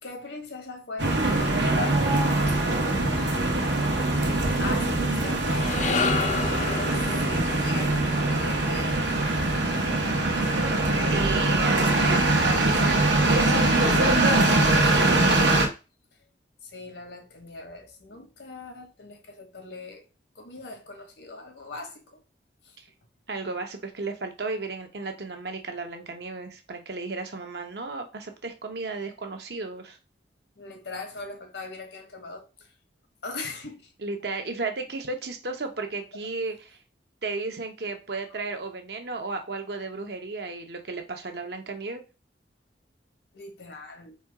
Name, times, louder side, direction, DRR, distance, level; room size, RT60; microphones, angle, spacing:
voice 1, 0.0-3.5 4.6-9.0 16.6-20.1 20.3-22.2 22.6-22.7 30.6-32.5 33.2-33.9 43.3-44.2, left 3 dB, 80° left, 1.3 m, -40 dB
sound 1, 1.0-15.7, right 2 dB, 85° right, 1.0 m, -23 dB
sound 2, 5.3-9.7, left 5 dB, 40° left, 0.5 m, -32 dB
voice 2, 11.1-14.0 14.4-14.8 22.8-22.9 23.3-30.0 34.0-36.8 37.2-42.0, right 3 dB, 65° right, 0.8 m, -34 dB
4.3 x 2.3 x 4.6 m
head